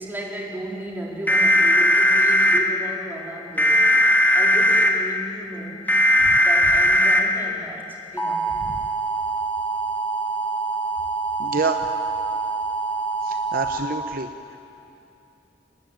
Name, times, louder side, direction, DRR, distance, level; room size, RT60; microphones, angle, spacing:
voice 1, 0.0-3.8 4.3-5.8 6.4-7.9 8.1-8.4, right 1 dB, 10° right, -3 dB, 4.4 m, -34 dB
sound 1, 1.3-2.6 3.6-4.9 5.9-7.2 8.2-13.8, equal, 10° left, 2.2 m, -20 dB
voice 2, 11.4-11.8 13.2-14.6, right 4 dB, 55° right, 6 dB, 0.9 m, -28 dB
26.5 x 20.0 x 9.1 m, 2.7 s
head